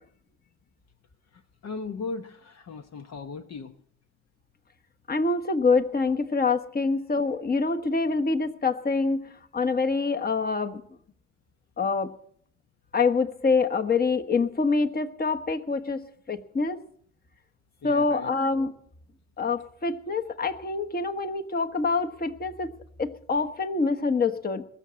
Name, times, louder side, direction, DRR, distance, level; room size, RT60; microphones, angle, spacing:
voice 1, 1.3-3.8 17.8-18.3, left 4 dB, 60° left, 8 dB, 1.0 m, -37 dB
voice 2, 5.1-10.8 11.8-12.1 12.9-16.8 17.8-18.7 19.4-22.7 23.0-24.6, left 4 dB, 30° left, 7 dB, 1.3 m, -26 dB
21.0 x 7.1 x 7.6 m, 0.63 s
cardioid pair, 90°, 30 cm